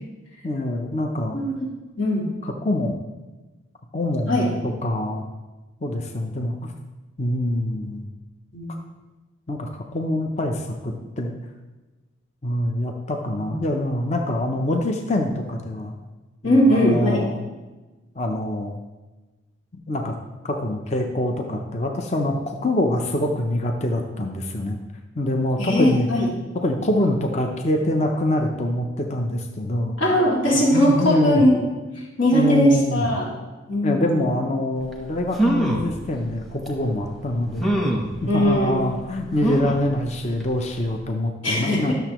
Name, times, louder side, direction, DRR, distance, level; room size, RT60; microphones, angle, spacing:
voice 1, 0.4-1.4 2.4-3.0 3.9-4.5 4.8-5.2 5.8-6.6 7.2-8.0 9.5-11.3 12.4-15.9 16.4-17.4 18.2-18.8 19.9-20.1 20.4-24.8 25.2-26.1 26.5-30.0 30.7-31.4 32.3-33.1 33.8-37.8 38.2-41.9, left 1 dB, 35° left, 3 dB, 0.6 m, -25 dB
voice 2, 1.3-1.7 2.0-2.3 4.3-4.4 8.5-8.8 13.4-13.6 16.4-17.2 25.6-26.3 30.0-31.6 32.2-33.3 33.7-34.1 38.3-38.8 41.4-41.9, equal, 75° left, -5 dB, 2.4 m, -20 dB
sound 1, 34.9-35.0 35.3-35.9 36.7-36.8 37.6-38.1 39.4-39.9 40.4-40.5 40.8-40.9, right 1 dB, ahead, 0.9 m, -22 dB
12.0 x 6.7 x 3.0 m, 1.2 s
head